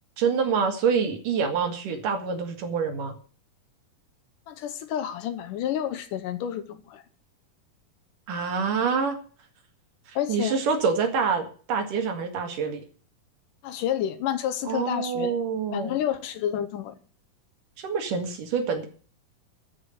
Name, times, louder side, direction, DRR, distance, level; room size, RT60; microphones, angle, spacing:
voice 1, 0.2-3.2 8.3-9.2 10.1-12.8 14.7-16.0 17.8-18.9, right 5 dB, 70° right, 5 dB, 3.5 m, -26 dB
voice 2, 4.5-7.0 10.2-10.6 13.6-15.4 15.7-17.0, left 10 dB, 75° left, 11 dB, 2.5 m, -29 dB
13.0 x 6.0 x 9.4 m, 0.42 s
omnidirectional pair, 4.0 m